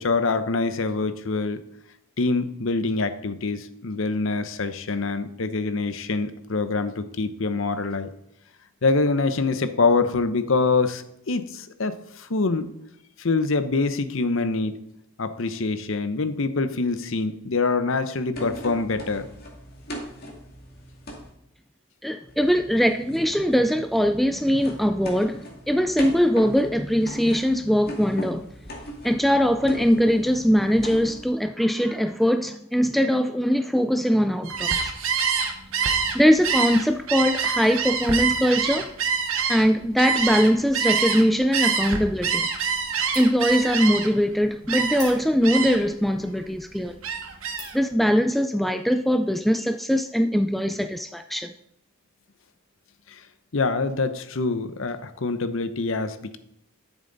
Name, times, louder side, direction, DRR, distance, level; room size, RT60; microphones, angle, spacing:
voice 1, 0.0-1.6 2.2-8.1 8.8-12.7 13.2-14.8 15.2-19.3 53.1-53.2 53.5-56.4, left 3 dB, 60° left, 0.7 m, -25 dB
sound 1, 18.3-21.3 22.3-31.3, equal, 45° left, 2.2 m, -39 dB
voice 2, 22.0-28.4 29.0-34.9 36.1-38.9 39.5-42.5 43.2-47.0 47.7-51.5, equal, ahead, 0.3 m, -21 dB
Gull seagull, 34.4-41.2 41.5-44.2 44.7-45.1 45.4-45.9 46.3-47.8, right 6 dB, 70° right, 1.2 m, -26 dB
sound 2, 42.5-42.9 43.1-43.5 43.9-44.0 44.9-45.6 46.3-46.4 46.9-47.1 47.6-48.0, left 3 dB, 20° left, 3.0 m, -42 dB
12.5 x 7.2 x 3.9 m
head